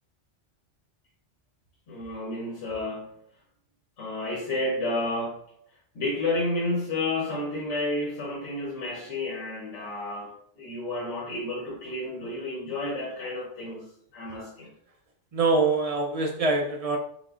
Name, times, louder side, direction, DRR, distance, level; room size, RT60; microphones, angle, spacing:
voice 1, 1.9-3.1 4.0-5.4 5.9-14.7, left 2 dB, 85° left, -4 dB, 1.4 m, -31 dB
voice 2, 15.3-17.0, right 3 dB, 50° right, 2 dB, 0.4 m, -24 dB
3.9 x 3.7 x 2.4 m, 0.68 s
omnidirectional pair, 1.2 m